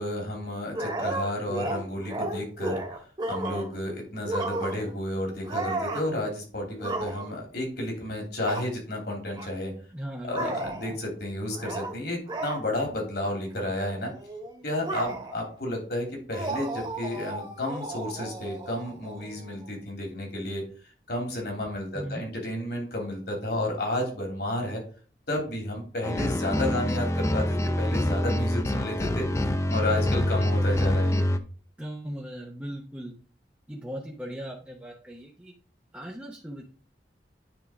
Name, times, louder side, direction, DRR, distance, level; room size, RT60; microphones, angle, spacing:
voice 1, 0.0-2.8 3.3-9.7 10.2-14.1 14.6-20.6 21.1-24.8 25.3-29.3 29.7-31.3, left 1 dB, 65° left, 1 dB, 3.0 m, -32 dB
sound 1, 0.7-3.8 4.2-5.0 5.4-6.1 6.8-7.4 8.5-8.7 9.3-9.5 10.3-10.9 11.5-12.0 12.3-12.6 13.2-13.4 13.6-15.5 16.3-19.7, right 2 dB, 25° right, 1.7 m, -34 dB
voice 2, 9.9-10.5 10.8-11.0 21.9-22.2 31.8-33.1 33.7-35.5 35.9-36.6, equal, 10° right, -1 dB, 0.8 m, -38 dB
sound 2, 26.0-31.4, left 1 dB, 15° left, 0.5 m, -25 dB
9.5 x 3.8 x 4.9 m, 0.41 s
head